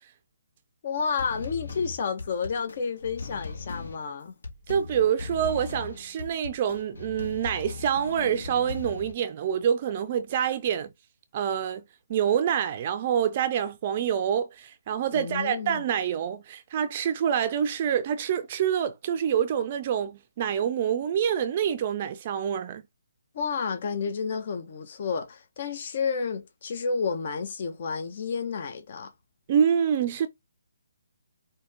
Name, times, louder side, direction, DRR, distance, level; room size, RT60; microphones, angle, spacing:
voice 1, 0.8-4.3 15.1-15.8 23.3-29.1, left 5 dB, 45° left, 0.9 m, -31 dB
sound 1, 1.2-9.1, left 4 dB, 75° left, 1.6 m, -39 dB
voice 2, 4.7-10.9 11.3-11.8 12.1-22.8 29.5-30.3, right 8 dB, 35° right, 0.4 m, -26 dB
5.0 x 2.8 x 3.5 m
hypercardioid pair, 150°, 0 cm